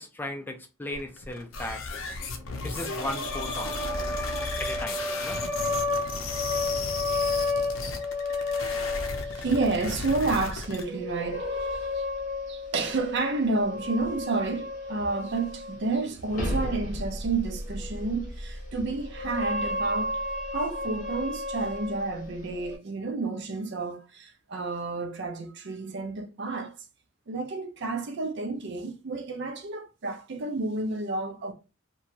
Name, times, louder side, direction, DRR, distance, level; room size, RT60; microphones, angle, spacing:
voice 1, 0.0-1.8 2.6-3.8 4.6-5.4, left 1 dB, 10° left, 0.4 m, -36 dB
sound 1, 0.9-10.8, left 3 dB, 70° left, 0.5 m, -35 dB
sound 2, 2.9-9.6 10.7-15.9 16.2-22.8, left 2 dB, 40° left, 0.8 m, -32 dB
voice 2, 9.0-12.1 12.5-20.2 20.5-26.8 27.3-31.5, right 3 dB, 60° right, 0.5 m, -30 dB
2.8 x 2.2 x 2.5 m
head